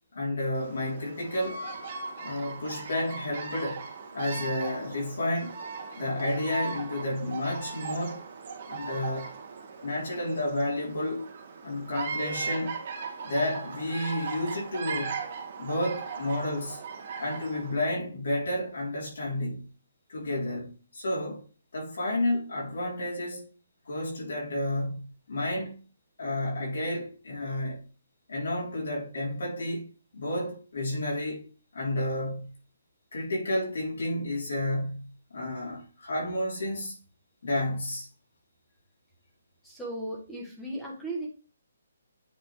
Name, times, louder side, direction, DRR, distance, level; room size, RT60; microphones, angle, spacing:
voice 1, 0.1-1.6 2.2-3.8 4.1-5.6 6.0-8.2 8.7-9.3 9.8-11.3 11.6-12.8 13.2-15.2 15.6-16.8 17.2-19.7 20.1-21.4 21.7-23.5 23.8-25.7 26.2-27.9 28.3-29.9 30.1-32.5 33.1-37.0 37.4-38.1, left 1 dB, 75° left, 3.4 m, -31 dB
Bird vocalization bird call bird song, 0.5-17.8, right 5 dB, 40° right, 1.6 m, -38 dB
voice 2, 39.6-41.3, right 1 dB, 5° left, 1.4 m, -36 dB
9.4 x 4.0 x 3.2 m
hypercardioid pair, 170°, 0 cm